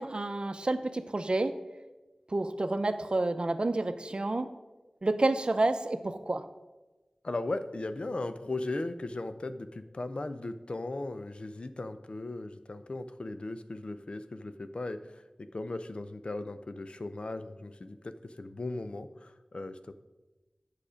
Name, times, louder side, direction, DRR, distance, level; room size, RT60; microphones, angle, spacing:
voice 1, 0.0-1.5 2.3-4.5 5.0-6.4, right 2 dB, 55° right, 9 dB, 0.7 m, -29 dB
voice 2, 7.2-19.9, left 2 dB, 60° left, 11 dB, 0.6 m, -37 dB
8.5 x 6.5 x 5.0 m, 1.1 s
wide cardioid pair, 40°, 2 cm